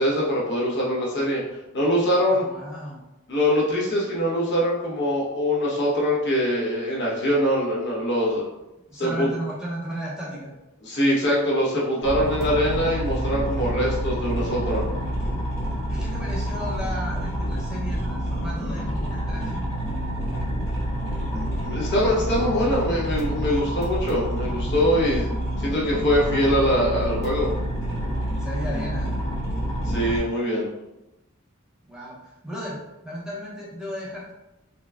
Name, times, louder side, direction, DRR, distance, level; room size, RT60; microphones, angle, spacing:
voice 1, 0.0-1.4 1.7-2.4 3.3-8.4 8.9-9.3 10.8-14.9 21.6-25.3 25.6-27.5 29.9-30.7, equal, 55° left, -5 dB, 0.9 m, -23 dB
voice 2, 2.3-3.0 8.9-10.5 15.9-19.6 28.4-29.1 31.9-32.8 33.0-34.3, equal, 5° right, -6 dB, 0.6 m, -34 dB
sound 1, 12.0-30.2, equal, 15° left, 1.0 m, -28 dB
4.0 x 2.1 x 2.3 m, 0.97 s
head